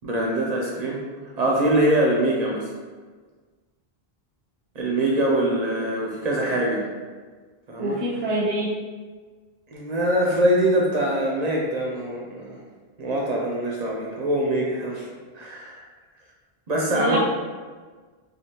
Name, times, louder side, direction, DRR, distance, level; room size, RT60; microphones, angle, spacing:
voice 1, 0.0-1.0 1.4-2.7 4.8-6.8 7.7-8.0 9.7-12.6 13.0-15.1 15.3-15.8 16.7-17.2, right 1 dB, 50° right, -2 dB, 0.5 m, -23 dB
voice 2, 7.8-8.8 16.9-17.2, right 1 dB, 90° right, -6 dB, 0.9 m, -25 dB
3.3 x 2.3 x 2.8 m, 1.4 s
omnidirectional pair, 1.0 m